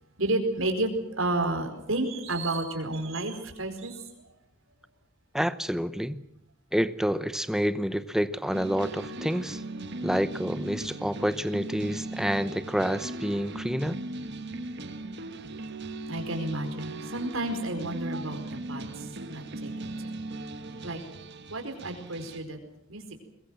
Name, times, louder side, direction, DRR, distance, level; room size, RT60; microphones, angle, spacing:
voice 1, 0.2-4.0 16.1-20.1 20.8-21.0 21.5-22.6 22.9-23.0, right 2 dB, 70° right, 5 dB, 4.7 m, -31 dB
voice 2, 5.3-6.2 6.7-9.6 10.0-14.0, equal, ahead, 13 dB, 0.8 m, -28 dB
sound 1, 8.5-22.4, right 2 dB, 55° right, 1.5 m, -38 dB
22.0 x 21.5 x 7.6 m, 0.75 s
head